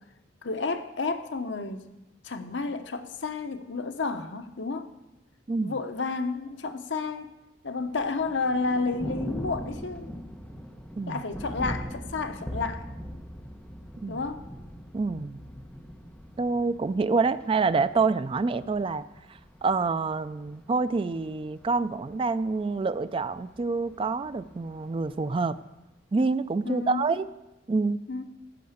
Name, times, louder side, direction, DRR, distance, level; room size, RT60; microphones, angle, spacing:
voice 1, 0.4-1.8 2.2-4.9 5.6-7.3 7.6-10.1 11.1-12.9 14.1-14.4 26.6-27.0 28.1-28.2, left 4 dB, 75° left, 8 dB, 0.9 m, -31 dB
Thunder, 7.8-25.8, equal, 5° left, 1.1 m, -42 dB
voice 2, 14.9-15.4 16.4-19.0 19.6-25.6 26.1-27.3 27.7-28.0, right 4 dB, 30° right, 14 dB, 0.3 m, -27 dB
14.0 x 5.8 x 7.9 m, 0.99 s
head